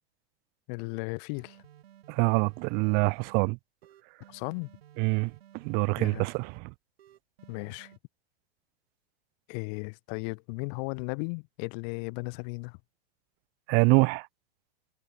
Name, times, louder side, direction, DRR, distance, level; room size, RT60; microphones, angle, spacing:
voice 1, 0.7-1.6 4.3-4.7 6.0-6.3 7.5-7.9 9.5-12.8, left 37 dB, 45° left, 0.7 m, -36 dB
sound 1, 1.3-3.4 3.8-6.6 7.0-8.0, right 11 dB, 75° right, 4.1 m, -56 dB
voice 2, 2.1-3.6 5.0-6.7 13.7-14.3, right 31 dB, 35° right, 0.4 m, -25 dB
hypercardioid pair, 110°, 30 cm